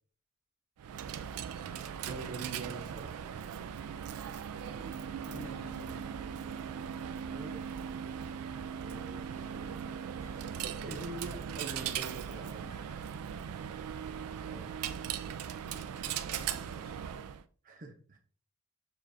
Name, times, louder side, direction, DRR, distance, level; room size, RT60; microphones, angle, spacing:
Coin (dropping), 0.8-17.4, right 8 dB, 85° right, 0.3 m, -39 dB
voice 1, 2.1-3.6 7.3-7.8 8.8-9.7 10.6-12.7 14.5-14.7 17.6-18.2, right 3 dB, 35° right, 0.7 m, -44 dB
voice 2, 5.2-6.2 16.0-17.0, equal, 65° left, 1.5 m, -49 dB
sound 1, 9.5-15.2, left 3 dB, 30° left, 0.9 m, -64 dB
6.7 x 2.5 x 2.6 m
head